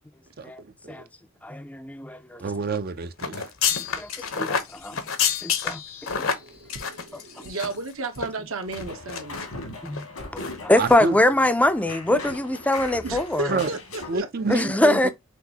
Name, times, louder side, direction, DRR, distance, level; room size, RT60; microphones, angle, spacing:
voice 1, 0.4-1.0 2.4-3.4 10.8-11.2 13.5-13.7 14.1-15.1, right 4 dB, 45° right, 0.5 m, -28 dB
voice 2, 1.4-2.4 4.0-4.1 4.3-5.0 5.4-5.8 9.8-10.0 10.3-13.5 14.5-15.1, left 1 dB, 5° left, 0.5 m, -22 dB
sound 1, 3.2-7.9 8.1-8.3 8.7-9.5 9.8-10.0 10.4-10.6 10.8-10.9, left 7 dB, 70° left, 1.0 m, -28 dB
sound 2, 6.0-6.2 6.7-6.8 7.4-7.5 8.1-8.2 8.8-8.9 9.5-9.6 10.1-10.3 10.7-11.0, right 1 dB, 85° right, 1.3 m, -42 dB
voice 3, 6.1-9.5 13.0-14.3, right 3 dB, 65° right, 1.0 m, -34 dB
sound 3, 8.7-14.2, left 2 dB, 90° left, 2.4 m, -39 dB
6.0 x 2.7 x 2.8 m
head